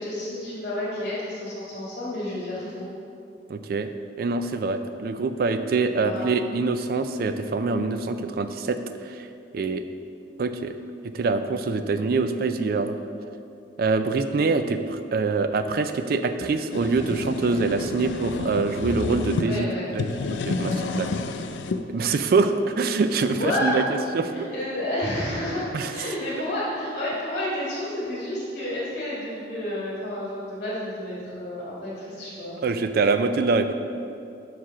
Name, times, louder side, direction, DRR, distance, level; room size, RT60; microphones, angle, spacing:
voice 1, 0.0-2.9 6.0-6.2 19.3-19.9 20.6-21.2 23.3-23.8 24.3-32.6, left 1 dB, 50° left, -8 dB, 1.6 m, -30 dB
voice 2, 3.5-3.9 4.2-8.8 9.0-9.3 9.5-9.8 10.4-10.7 11.1-13.0 13.8-21.1 21.9-24.3 25.7-26.1 32.6-33.8, right 4 dB, 55° right, 9 dB, 0.4 m, -25 dB
sound 1, 16.4-19.5 19.9-21.8, left 4 dB, 85° left, 0.4 m, -30 dB
5.8 x 4.8 x 5.6 m, 2.5 s
head